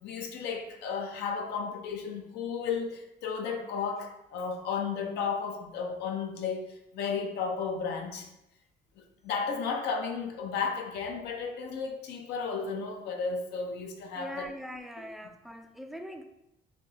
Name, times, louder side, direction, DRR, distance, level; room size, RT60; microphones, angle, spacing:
voice 1, 0.0-8.3 9.0-14.5, left 5 dB, 80° left, 3 dB, 0.7 m, -33 dB
voice 2, 14.2-16.2, equal, ahead, 7 dB, 0.3 m, -42 dB
3.4 x 2.8 x 4.1 m, 0.88 s
cardioid pair, 110°, 17 cm